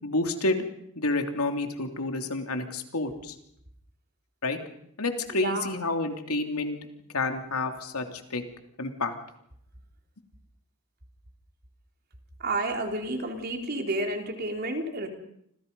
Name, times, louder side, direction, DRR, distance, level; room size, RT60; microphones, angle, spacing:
voice 1, 0.0-0.7 1.0-3.3 4.4-4.6 5.0-6.8 7.1-8.0 8.3-8.4 8.8-9.1, left 2 dB, 80° left, 5 dB, 3.1 m, -29 dB
voice 2, 5.4-5.7 12.4-15.1, right 2 dB, 45° right, 3 dB, 3.8 m, -30 dB
29.5 x 26.5 x 5.5 m, 0.73 s
head